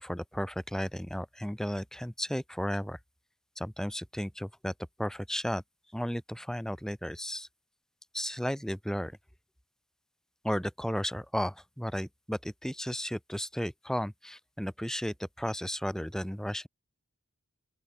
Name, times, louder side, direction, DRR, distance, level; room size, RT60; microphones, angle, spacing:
voice 1, 0.0-3.0 3.6-4.7 5.0-5.6 5.9-7.5 8.1-9.1 10.4-16.7, equal, ahead, 1.0 m, -34 dB
open air
head